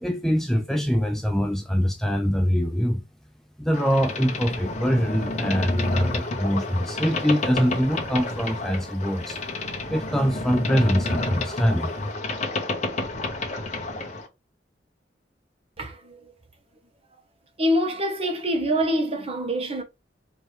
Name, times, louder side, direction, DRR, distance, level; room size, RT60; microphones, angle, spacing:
voice 1, 0.0-3.0 3.6-9.4 9.9-11.9, equal, ahead, 0.4 m, -23 dB
Boat Water vehicle, 3.7-14.3, left 2 dB, 40° left, 1.0 m, -30 dB
Piano, 5.8-8.7, left 1 dB, 70° right, 1.8 m, -43 dB
voice 2, 15.8-16.3 17.6-19.8, equal, 35° right, 1.2 m, -25 dB
4.5 x 2.9 x 3.3 m
head